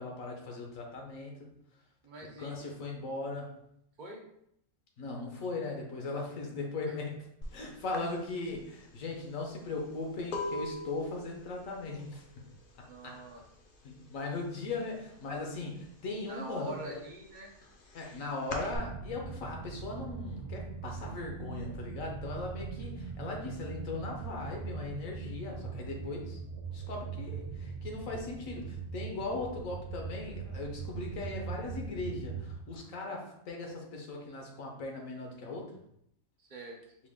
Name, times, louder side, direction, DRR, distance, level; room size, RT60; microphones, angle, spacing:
voice 1, 0.0-1.5 2.4-3.5 5.0-7.2 7.5-12.2 12.8-13.2 13.8-17.0 17.9-26.4 26.7-35.7, left 3 dB, 70° left, 1 dB, 1.2 m, -38 dB
voice 2, 2.0-2.5 4.0-4.2 12.9-13.4 16.3-17.5 36.4-36.8, right 2 dB, 55° right, 0 dB, 0.5 m, -44 dB
sound 1, 7.4-7.6 7.9-13.6 13.9-14.4 14.7-15.8 16.2-18.8, left 2 dB, 55° left, 0.6 m, -42 dB
sound 2, 18.7-32.6, right 5 dB, 80° right, 1.1 m, -41 dB
5.1 x 2.3 x 3.6 m, 0.74 s
omnidirectional pair, 1.5 m